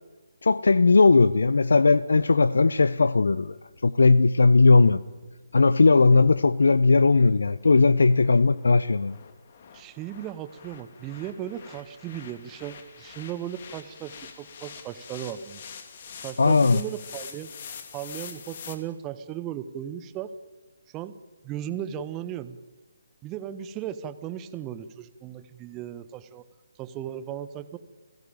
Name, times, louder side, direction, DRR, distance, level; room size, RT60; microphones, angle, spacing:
voice 1, 0.4-3.5 3.8-5.0 5.5-9.2 16.4-16.8, left 3 dB, 65° left, 17 dB, 0.7 m, -18 dB
sound 1, 3.7-18.8, left 7 dB, 40° left, 2.8 m, -46 dB
voice 2, 9.7-15.6 16.2-17.5 17.9-20.3 20.9-21.1 21.4-22.6 23.2-26.5 26.8-27.8, right 10 dB, 20° right, 13 dB, 1.2 m, -36 dB
28.5 x 16.5 x 9.1 m, 1.3 s
figure-of-eight pair, 145°, 0 cm